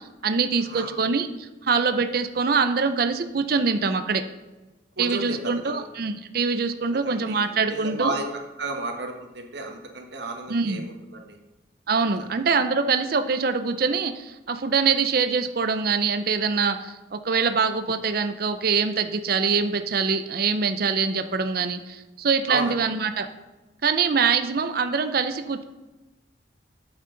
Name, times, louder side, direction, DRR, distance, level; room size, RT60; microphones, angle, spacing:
voice 1, 0.0-4.2 5.0-8.1 10.5-10.8 11.9-23.3 23.8-25.6, right 5 dB, 50° right, 9 dB, 0.5 m, -24 dB
voice 2, 0.6-1.0 5.0-5.8 6.9-7.4 7.7-8.2 8.6-11.4 12.2-12.3 22.5-22.8, right 3 dB, 70° right, 3 dB, 1.4 m, -32 dB
8.8 x 8.1 x 3.9 m, 1.1 s
head